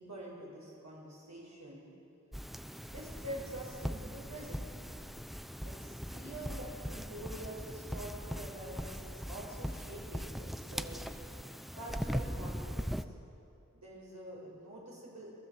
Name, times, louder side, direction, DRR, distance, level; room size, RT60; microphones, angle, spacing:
voice 1, 0.0-1.9 2.8-4.6 5.6-11.0 11.7-13.1 13.7-15.4, right 1 dB, 70° right, -5 dB, 6.7 m, -46 dB
sound 1, 2.3-13.1, equal, ahead, 0.8 m, -40 dB
29.0 x 17.0 x 7.8 m, 2.6 s
wide cardioid pair, 45°, 29 cm